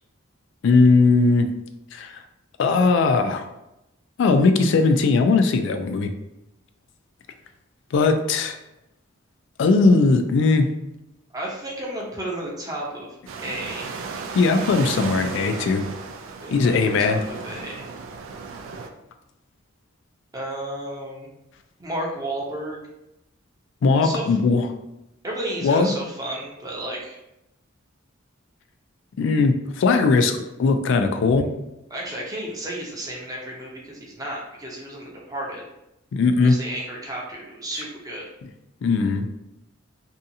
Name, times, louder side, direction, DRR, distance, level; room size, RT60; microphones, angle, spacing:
voice 1, 0.6-1.5 1.9-2.2 2.6-3.5 4.2-6.1 7.9-8.6 9.6-10.7 14.3-15.8 16.5-17.2 23.8-24.7 25.6-25.9 29.2-31.5 36.1-36.6 38.8-39.3, left 4 dB, 65° left, 7 dB, 0.3 m, -19 dB
voice 2, 11.3-13.1 13.4-14.0 16.4-17.9 20.3-21.3 21.8-22.8 23.9-24.4 25.2-27.2 31.3-31.4 31.9-35.6 36.4-38.2, right 1 dB, 20° right, -3 dB, 0.6 m, -32 dB
sound 1, 13.3-18.9, right 4 dB, 80° right, 0.3 m, -35 dB
2.7 x 2.3 x 2.6 m, 0.89 s
head